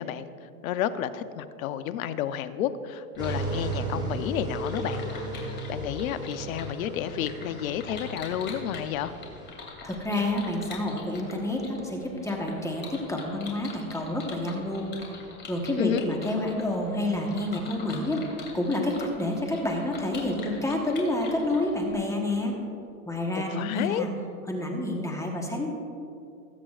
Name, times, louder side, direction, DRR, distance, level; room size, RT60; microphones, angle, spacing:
voice 1, 0.0-5.0 5.3-9.1 15.8-16.0 23.3-24.0, left 10 dB, 65° left, 12 dB, 0.8 m, -31 dB
sound 1, 3.1-21.9, left 4 dB, 25° left, 2.7 m, -45 dB
sound 2, 3.2-9.5, right 2 dB, 10° right, 2.6 m, -35 dB
voice 2, 9.8-14.9 15.5-18.2 18.5-22.5 23.1-24.1 24.5-25.7, left 1 dB, 5° left, 0 dB, 1.2 m, -29 dB
20.0 x 9.0 x 2.4 m, 2.6 s
hypercardioid pair, 125°, 45 cm